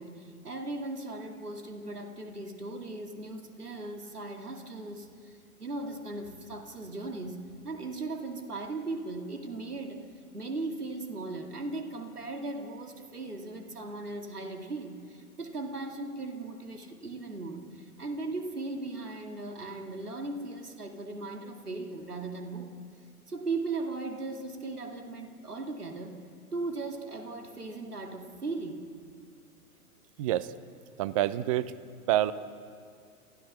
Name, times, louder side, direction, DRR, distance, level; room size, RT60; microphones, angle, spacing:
voice 1, 0.0-10.1 10.3-22.7 23.3-26.2 26.5-28.9, right 3 dB, 85° right, 4 dB, 2.4 m, -38 dB
voice 2, 30.2-30.5 31.0-31.7 32.1-32.3, right 14 dB, 25° right, 16 dB, 0.6 m, -27 dB
30.0 x 15.5 x 6.7 m, 2.4 s
figure-of-eight pair, 115°, 44 cm